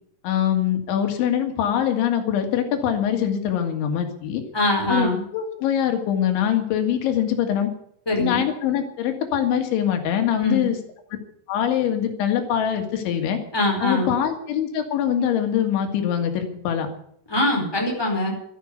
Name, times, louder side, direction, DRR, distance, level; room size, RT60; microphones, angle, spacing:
voice 1, 0.2-4.4 4.9-7.7 8.2-10.8 11.5-13.4 13.8-16.9, left 9 dB, 85° left, 6 dB, 4.3 m, -23 dB
voice 2, 4.5-5.2 8.1-8.4 10.4-10.7 13.5-14.1 17.3-18.3, left 1 dB, 5° left, 0 dB, 4.2 m, -23 dB
13.0 x 12.0 x 8.3 m, 0.67 s
omnidirectional pair, 5.2 m